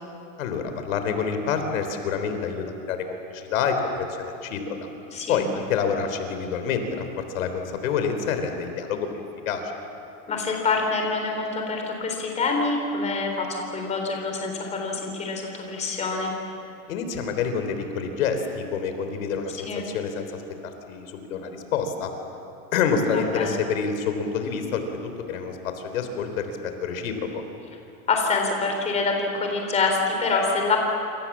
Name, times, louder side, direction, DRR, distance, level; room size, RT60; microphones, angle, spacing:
voice 1, 0.4-4.8 5.3-9.7 16.9-20.4 20.9-22.1 22.7-27.2, left 6 dB, 80° left, 7 dB, 3.9 m, -27 dB
voice 2, 5.1-5.5 10.3-16.3 19.7-19.8 23.1-23.6 28.1-30.8, left 3 dB, 15° left, 2 dB, 3.7 m, -26 dB
27.5 x 27.0 x 7.5 m, 2.7 s
supercardioid pair, 170°, 40 cm